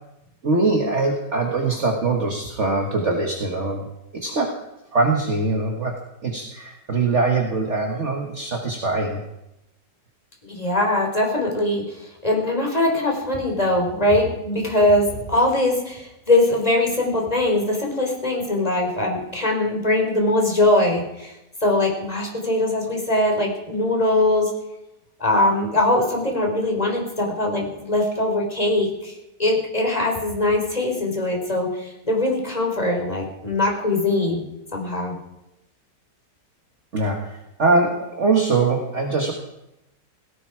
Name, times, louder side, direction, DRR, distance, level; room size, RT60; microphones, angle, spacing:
voice 1, 0.4-3.8 4.1-4.6 4.9-5.9 6.2-9.2 25.3-25.4 36.9-39.3, right 3 dB, 40° right, 2 dB, 1.9 m, -22 dB
voice 2, 10.4-21.4 21.6-24.5 25.2-29.1 29.4-34.4 34.7-35.2, left 1 dB, 20° left, 0 dB, 4.3 m, -21 dB
18.0 x 16.5 x 4.9 m, 0.89 s
omnidirectional pair, 1.9 m